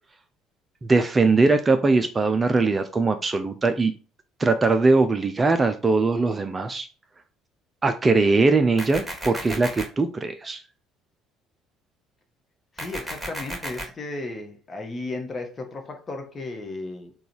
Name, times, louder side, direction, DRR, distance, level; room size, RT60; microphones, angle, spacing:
voice 1, 0.9-3.9 4.4-6.9 7.8-10.6, right 3 dB, 25° right, 8 dB, 0.4 m, -21 dB
sound 1, 8.8-9.8 12.8-13.8, right 1 dB, ahead, 1.5 m, -33 dB
voice 2, 12.7-17.1, left 2 dB, 30° left, 4 dB, 1.0 m, -34 dB
3.8 x 2.3 x 4.4 m, 0.34 s
figure-of-eight pair, 55°, 0 cm